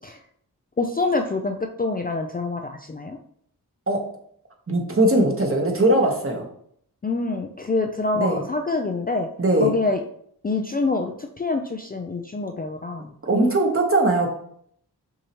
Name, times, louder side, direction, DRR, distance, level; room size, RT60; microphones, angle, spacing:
voice 1, 0.8-3.2 7.0-9.3 9.6-10.0 10.4-13.1, left 3 dB, 25° left, 4 dB, 0.4 m, -26 dB
voice 2, 4.7-6.5 8.1-8.4 9.4-9.8 13.2-14.3, right 1 dB, 35° right, 2 dB, 1.1 m, -20 dB
6.3 x 2.8 x 3.0 m, 0.66 s
cardioid pair, 45°, 39 cm